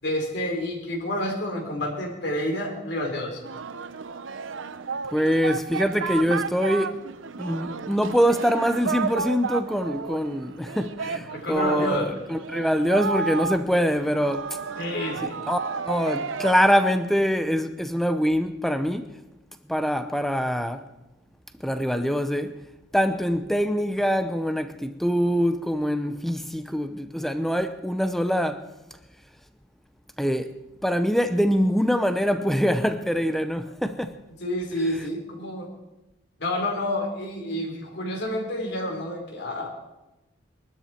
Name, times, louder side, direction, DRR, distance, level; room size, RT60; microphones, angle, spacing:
voice 1, 0.0-3.4 11.3-12.1 14.8-15.4 34.4-35.7 36.4-39.7, left 1 dB, 55° left, 4.0 m, -29 dB
Singing, 3.4-16.5, right 5 dB, 75° right, 0.7 m, -32 dB
voice 2, 5.1-7.0 7.4-14.6 15.2-19.1 19.7-20.9 21.6-22.6 22.9-28.6 30.2-34.2, equal, ahead, 0.8 m, -24 dB
23.0 x 12.5 x 4.4 m
head